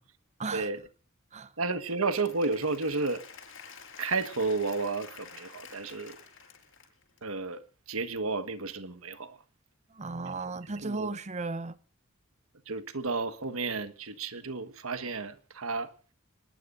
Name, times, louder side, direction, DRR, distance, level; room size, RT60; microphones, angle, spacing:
voice 1, 0.5-0.8 1.6-3.2 4.0-6.2 7.2-9.4 10.8-11.1 12.7-15.9, right 3 dB, 80° right, 1.5 m, -32 dB
Applause / Crowd, 1.9-7.2, left 6 dB, 65° left, 6.1 m, -50 dB
voice 2, 9.9-11.8, right 3 dB, 35° right, 0.7 m, -35 dB
25.5 x 20.0 x 2.6 m
head